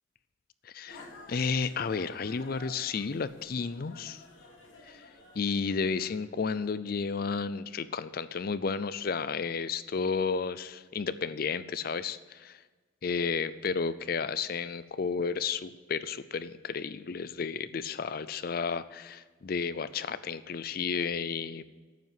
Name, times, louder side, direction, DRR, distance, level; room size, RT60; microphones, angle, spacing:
voice 1, 0.6-4.2 4.9-5.1 5.4-12.6 13.0-21.6, left 5 dB, 45° left, 15 dB, 0.4 m, -32 dB
sound 1, 0.8-6.4, left 2 dB, 75° left, 2.8 m, -52 dB
9.3 x 8.3 x 7.4 m, 1.4 s
head